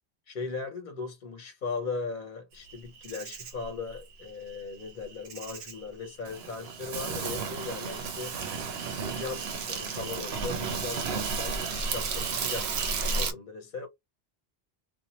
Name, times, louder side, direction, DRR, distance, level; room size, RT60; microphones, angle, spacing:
voice 1, 0.3-8.4 8.9-13.9, left 4 dB, 55° left, 0.8 m, -38 dB
Insect, 2.7-13.3, right 5 dB, 75° right, 0.9 m, -33 dB
2.7 x 2.1 x 2.9 m
omnidirectional pair, 1.1 m